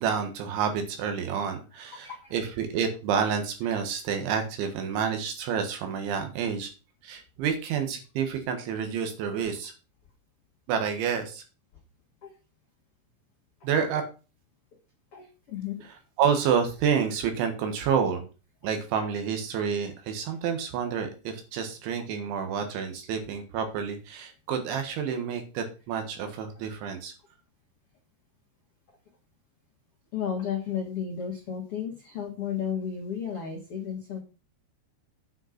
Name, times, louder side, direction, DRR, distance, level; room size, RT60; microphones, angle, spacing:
voice 1, 0.0-6.7 7.0-9.7 10.7-11.4 13.6-14.0 16.2-18.3 18.6-27.1, right 7 dB, 80° right, 6 dB, 3.8 m, -29 dB
voice 2, 2.0-2.3 12.2-12.3 13.6-14.0 15.1-15.8 30.1-34.2, left 8 dB, 65° left, 0 dB, 1.4 m, -33 dB
9.1 x 5.6 x 5.9 m, 0.33 s
omnidirectional pair, 5.4 m